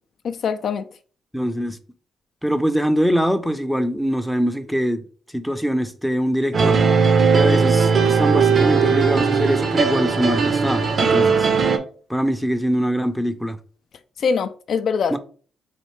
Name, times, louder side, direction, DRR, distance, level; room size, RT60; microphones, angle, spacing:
voice 1, 0.2-0.8 14.2-15.1, left 6 dB, 60° left, 0.3 m, -23 dB
voice 2, 1.3-1.8 2.4-5.0 5.3-6.8 7.3-11.5 12.1-13.6 15.1-15.2, equal, ahead, 0.5 m, -23 dB
sound 1, 6.5-11.8, right 5 dB, 45° right, 0.6 m, -18 dB
4.3 x 2.7 x 3.1 m
cardioid pair, 90°, 0 cm